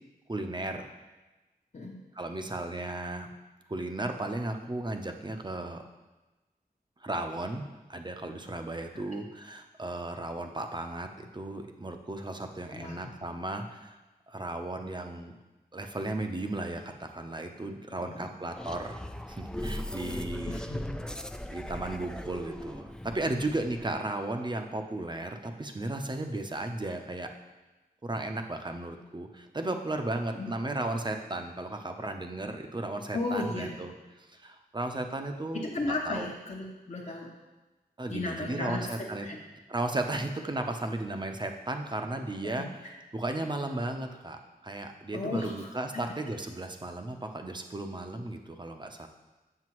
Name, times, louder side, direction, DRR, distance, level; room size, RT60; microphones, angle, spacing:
voice 1, 0.3-0.9 2.1-3.3 3.7-5.8 7.0-7.6 7.9-14.0 14.3-15.4 15.7-19.0 19.3-20.6 21.5-27.3 28.0-36.3 38.0-39.3 39.7-42.8 43.1-49.1, right 2 dB, 25° right, 5 dB, 0.7 m, -35 dB
voice 2, 12.7-13.1 18.0-18.3 20.5-20.9 30.3-30.5 33.1-33.8 35.5-37.3 38.1-39.4 45.1-45.7 45.9-46.0, left 2 dB, 45° left, -3 dB, 0.9 m, -35 dB
sound 1, 18.5-23.9, left 1 dB, 5° left, 0.3 m, -39 dB
7.7 x 6.6 x 3.1 m, 1.1 s
wide cardioid pair, 65°, 16 cm